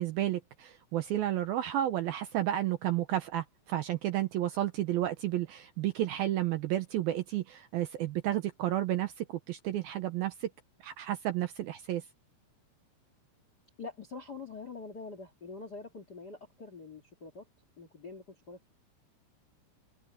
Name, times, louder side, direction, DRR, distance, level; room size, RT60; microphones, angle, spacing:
voice 1, 0.0-10.5 10.8-12.0, right 13 dB, 75° right, 2.3 m, -32 dB
voice 2, 13.8-17.5 17.8-18.7, left 4 dB, 35° left, 1.6 m, -45 dB
open air
omnidirectional pair, 5.1 m